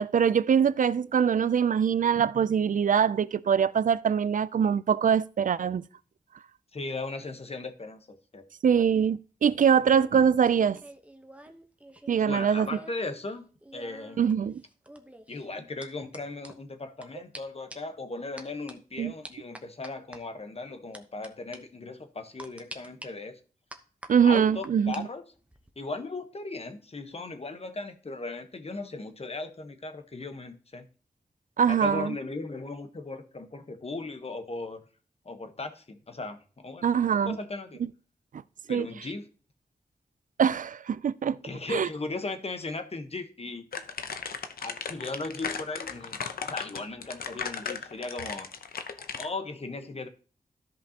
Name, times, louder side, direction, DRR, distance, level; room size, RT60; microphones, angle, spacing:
voice 1, 0.0-5.8 8.6-10.8 12.1-12.7 14.2-14.6 19.0-19.1 24.1-25.1 31.6-32.1 36.8-37.4 38.7-38.9 40.4-41.4 41.7-41.9, right 7 dB, 65° right, 0.4 m, -23 dB
voice 2, 6.7-8.4 12.1-13.4 13.7-14.2 15.3-23.4 24.2-25.2 25.8-30.9 31.7-34.8 35.2-37.8 38.7-39.3 41.4-43.6 44.6-46.2 46.4-48.5 49.2-50.1, left 3 dB, 45° left, 1.1 m, -37 dB
sound 1, 9.8-13.1 13.3-17.1 17.3-17.4 17.7-18.0 18.4-18.7 19.2-20.2 20.9-21.3 21.5-21.6 22.4-23.1 23.7-25.0 25.3-25.7, right 1 dB, 10° right, 0.9 m, -47 dB
sound 2, 43.7-49.3, left 6 dB, 80° left, 0.7 m, -36 dB
13.5 x 5.2 x 2.9 m
wide cardioid pair, 70°, 15 cm